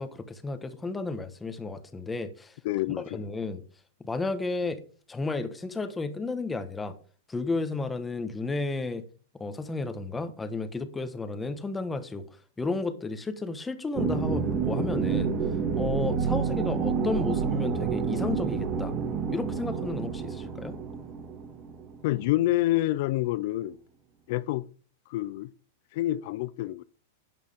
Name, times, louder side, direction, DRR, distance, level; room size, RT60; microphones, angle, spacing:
voice 1, 0.0-2.6 3.1-3.6 4.0-4.8 5.1-6.9 7.3-9.0 9.4-15.3 15.7-18.9 19.3-20.7, left 3 dB, 10° left, 1.3 m, -33 dB
voice 2, 2.6-3.2 22.0-23.8 24.3-24.7 25.1-25.5 25.9-26.8, left 16 dB, 55° left, 0.5 m, -27 dB
sound 1, 13.9-22.5, right 6 dB, 30° right, 1.8 m, -29 dB
11.5 x 9.1 x 3.6 m
supercardioid pair, 140°, 0 cm